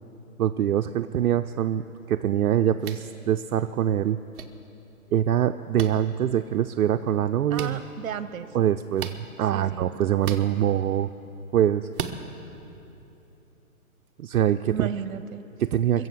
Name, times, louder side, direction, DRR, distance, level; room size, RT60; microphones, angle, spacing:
voice 1, 0.4-1.8 2.1-4.2 5.1-7.8 8.5-11.1 11.5-11.9 14.2-14.9 15.6-16.1, right 10 dB, 85° right, 7 dB, 0.6 m, -24 dB
sound 1, 2.8-3.1 4.3-4.4 5.8-5.9 7.5-7.7 9.0-9.2 10.2-10.4 11.9-12.2, right 8 dB, 40° right, 0.9 m, -34 dB
voice 2, 7.5-8.5 9.5-9.9 14.7-15.4 16.0-16.1, right 8 dB, 65° right, 13 dB, 1.0 m, -34 dB
21.5 x 7.7 x 7.7 m, 3.0 s
hypercardioid pair, 150°, 43 cm